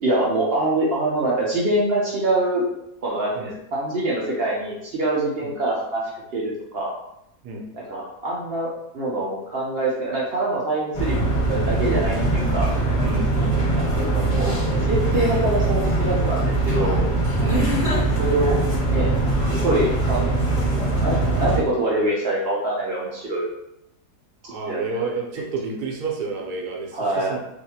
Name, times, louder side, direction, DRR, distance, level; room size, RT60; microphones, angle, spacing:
voice 1, 0.0-2.6 3.0-6.0 6.3-6.9 7.7-11.2 11.5-12.7 13.7-17.0 18.2-18.6 18.8-19.3 19.6-20.3 20.6-23.5 24.7-25.1 26.9-27.4, right 2 dB, 65° right, -4 dB, 0.6 m, -24 dB
sound 1, 10.9-21.6, right 2 dB, 25° left, 0.9 m, -22 dB
voice 2, 13.0-13.6 17.4-17.8 24.4-27.4, right 3 dB, 85° right, 1 dB, 1.2 m, -30 dB
3.7 x 2.4 x 2.7 m, 0.82 s
omnidirectional pair, 1.7 m